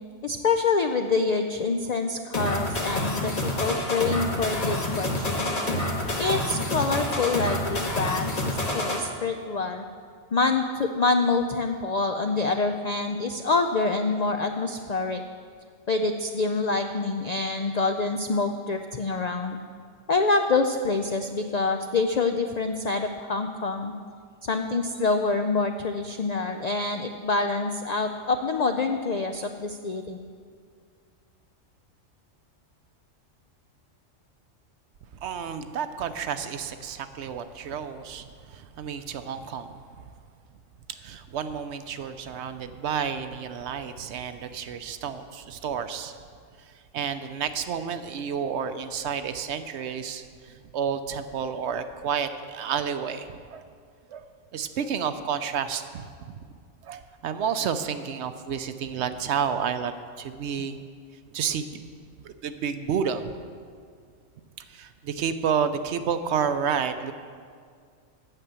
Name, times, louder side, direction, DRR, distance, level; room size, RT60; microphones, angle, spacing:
voice 1, 0.2-5.5 6.2-8.3 8.7-9.8 10.3-15.2 15.9-19.6 20.1-23.9 24.4-30.2, left 3 dB, 70° left, 6 dB, 0.4 m, -26 dB
sound 1, 2.3-9.0, left 1 dB, 30° left, 1.2 m, -28 dB
voice 2, 35.2-39.8 40.9-46.1 46.6-53.6 54.1-54.2 54.5-56.1 56.8-60.8 61.3-61.8 62.2-63.3 64.7-67.1, right 7 dB, 65° right, 10 dB, 0.8 m, -30 dB
9.1 x 6.8 x 8.0 m, 2.1 s
omnidirectional pair, 1.3 m